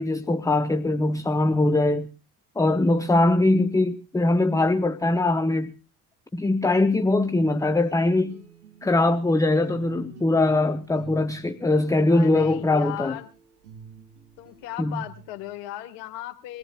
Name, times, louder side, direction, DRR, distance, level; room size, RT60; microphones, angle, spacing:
voice 1, 0.0-2.1 2.6-5.7 6.3-8.4 8.8-13.2 14.8-15.0, left 2 dB, 5° left, 0.8 m, -22 dB
sound 1, 7.4-15.6, right 4 dB, 80° right, 1.5 m, -49 dB
voice 2, 12.1-13.3 14.4-16.6, left 13 dB, 60° left, 1.8 m, -36 dB
24.5 x 18.0 x 2.3 m
figure-of-eight pair, 60°, 46 cm